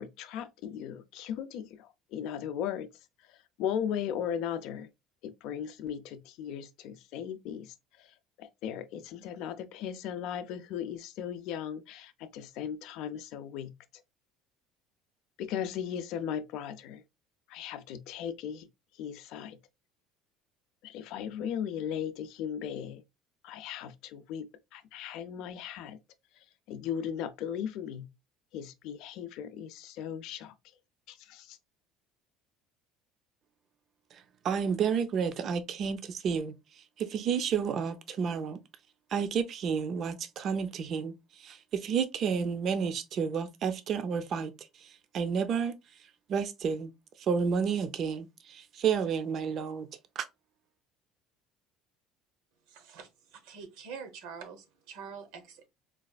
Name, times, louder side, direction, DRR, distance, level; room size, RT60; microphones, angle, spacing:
voice 1, 0.0-2.9 3.6-4.9 5.2-7.7 8.4-13.8 15.4-17.0 17.5-18.7 19.0-19.6 20.8-23.0 23.4-26.0 26.7-28.1 28.5-30.5 31.1-31.6, left 9 dB, 70° left, 0.4 m, -37 dB
voice 2, 34.4-36.5 37.0-38.6 39.1-41.1 41.4-44.5 45.1-45.7 46.3-46.9 47.3-49.9 50.2-50.3, right 6 dB, 45° right, 0.4 m, -30 dB
voice 3, 52.7-55.7, right 6 dB, 80° right, 0.8 m, -45 dB
4.0 x 2.4 x 2.2 m
cardioid pair, 140°, 0 cm